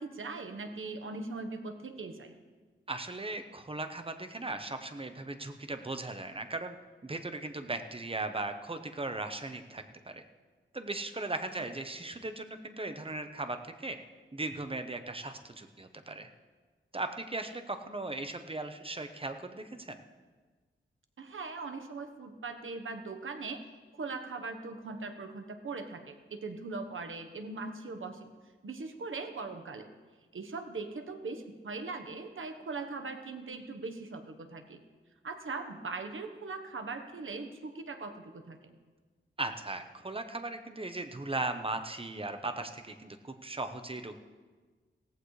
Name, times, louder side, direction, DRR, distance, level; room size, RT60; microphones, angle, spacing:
voice 1, 0.0-2.3 21.2-23.6 23.9-28.3 28.6-29.9 30.3-34.8 35.2-38.8, right 3 dB, 75° right, 6 dB, 1.2 m, -40 dB
voice 2, 2.9-6.7 7.0-10.2 10.7-14.0 14.3-16.3 16.9-20.0 39.4-44.2, right 2 dB, 25° right, 7 dB, 0.9 m, -38 dB
17.5 x 15.0 x 3.3 m, 1.4 s
wide cardioid pair, 100°, 21 cm